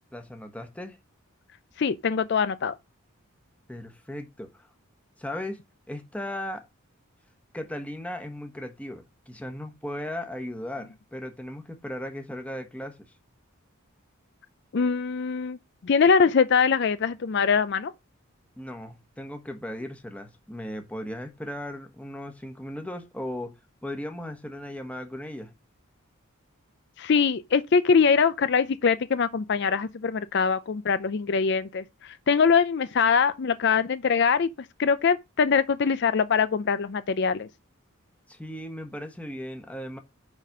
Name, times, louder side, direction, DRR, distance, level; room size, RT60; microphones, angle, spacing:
voice 1, 0.1-1.0 3.7-4.7 5.2-5.6 5.9-6.7 7.5-13.1 18.6-23.6 23.8-25.5 38.3-40.0, left 1 dB, 5° left, 1.2 m, -37 dB
voice 2, 1.8-2.8 14.7-15.6 15.8-17.9 27.0-34.5 34.8-37.5, left 5 dB, 50° left, 0.4 m, -23 dB
9.8 x 4.1 x 6.1 m
head